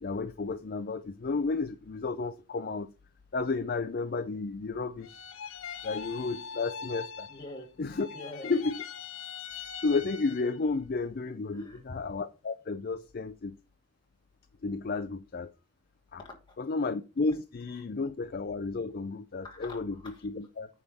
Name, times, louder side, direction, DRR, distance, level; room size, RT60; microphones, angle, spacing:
voice 1, 0.0-2.9 3.3-5.3 5.8-7.3 7.8-8.1 8.4-8.8 9.8-13.6 14.6-15.5 16.1-16.2 16.6-20.7, left 3 dB, 45° left, 0.4 m, -32 dB
sound 1, 5.0-7.7 7.9-10.7, left 6 dB, 65° left, 0.9 m, -42 dB
voice 2, 7.3-7.7 8.1-8.5 11.5-11.8 16.2-16.6 19.4-20.3, left 1 dB, 20° left, 2.5 m, -45 dB
9.2 x 3.5 x 6.7 m
head